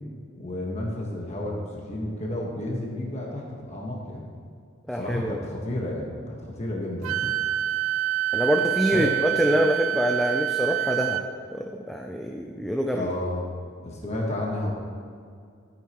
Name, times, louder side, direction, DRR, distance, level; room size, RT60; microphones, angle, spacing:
voice 1, 0.4-4.3 4.9-7.3 8.9-9.1 12.9-13.4 13.8-14.7, left 1 dB, 30° left, -2 dB, 1.4 m, -31 dB
voice 2, 4.9-5.4 8.3-11.2 11.5-13.1, equal, ahead, 1 dB, 0.4 m, -25 dB
Wind instrument woodwind instrument, 7.0-11.2, right 12 dB, 85° right, 0.3 m, -26 dB
13.0 x 8.5 x 3.0 m, 2.3 s
head